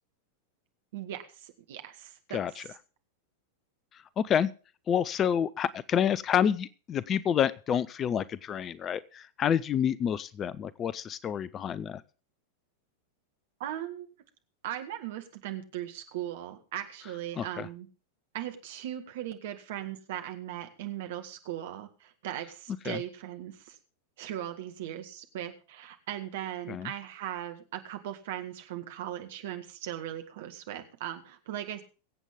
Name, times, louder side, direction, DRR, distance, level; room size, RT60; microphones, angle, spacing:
voice 1, 0.9-2.7 13.6-14.1 14.6-17.9 18.3-23.8 24.2-31.8, right 12 dB, 55° right, 6 dB, 1.9 m, -38 dB
voice 2, 2.3-2.6 4.2-4.5 4.9-12.0 17.4-17.7 22.9-23.0 26.7-26.9, left 8 dB, 25° left, 18 dB, 0.6 m, -28 dB
23.0 x 8.2 x 3.6 m, 0.36 s
figure-of-eight pair, 90°, 0 cm